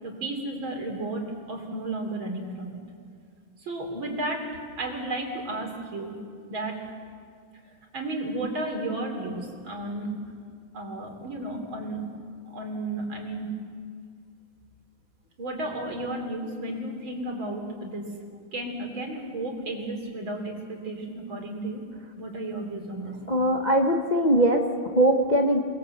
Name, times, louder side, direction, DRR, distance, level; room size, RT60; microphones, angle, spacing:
voice 1, 0.0-2.8 3.6-6.1 6.5-6.9 7.6-10.1 10.7-12.0 12.5-13.5 15.4-18.0 18.5-21.8 22.2-23.2, right 2 dB, 65° right, 2 dB, 4.4 m, -33 dB
voice 2, 23.3-25.6, right 1 dB, 25° left, 3 dB, 1.1 m, -21 dB
28.5 x 21.5 x 8.0 m, 2.1 s
omnidirectional pair, 2.3 m